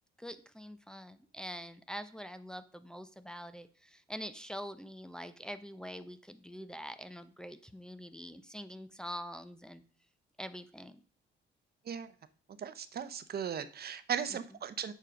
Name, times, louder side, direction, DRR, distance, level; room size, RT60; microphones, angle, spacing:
voice 1, 0.2-9.8 10.4-11.0, equal, 5° left, 9 dB, 0.7 m, -45 dB
voice 2, 12.6-14.9, right 8 dB, 50° right, 12 dB, 0.8 m, -37 dB
7.3 x 6.7 x 5.2 m, 0.41 s
cardioid pair, 90°, 20 cm